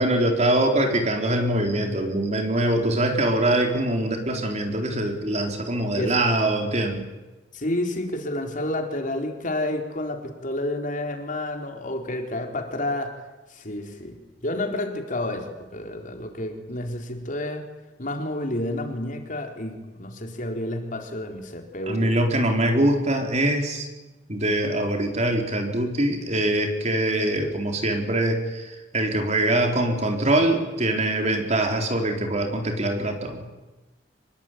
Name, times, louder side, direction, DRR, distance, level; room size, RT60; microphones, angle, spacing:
voice 1, 0.0-7.1 21.9-23.9 24.3-33.4, right 1 dB, 40° right, 4 dB, 4.3 m, -23 dB
voice 2, 7.5-13.2 13.5-17.7 18.0-22.1, left 1 dB, 45° left, 4 dB, 4.0 m, -30 dB
26.0 x 21.5 x 9.3 m, 1.1 s
head